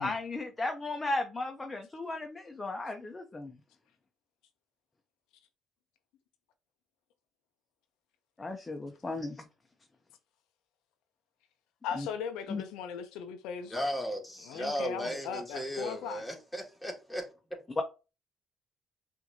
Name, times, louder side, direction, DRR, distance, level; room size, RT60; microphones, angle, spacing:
voice 1, 0.0-3.6 8.4-9.5 12.0-12.1 12.5-12.6 17.8-17.9, left 2 dB, 25° left, 0.7 m, -35 dB
voice 2, 11.8-13.8 14.4-16.2, left 7 dB, 85° left, 0.6 m, -38 dB
voice 3, 13.7-17.3, equal, 5° left, 1.9 m, -35 dB
5.6 x 2.7 x 2.7 m
supercardioid pair, 65°, 0 cm